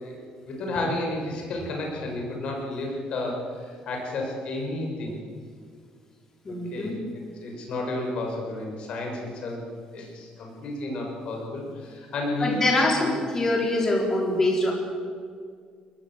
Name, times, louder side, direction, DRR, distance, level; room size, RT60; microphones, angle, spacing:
voice 1, 0.0-5.2 6.7-9.6 9.9-12.6 13.0-13.1, left 2 dB, 50° left, 1 dB, 6.5 m, -32 dB
voice 2, 6.4-7.0 12.4-14.7, left 2 dB, 20° left, 0 dB, 4.5 m, -24 dB
23.5 x 20.5 x 7.7 m, 2.1 s
cardioid pair, 170°, 2 cm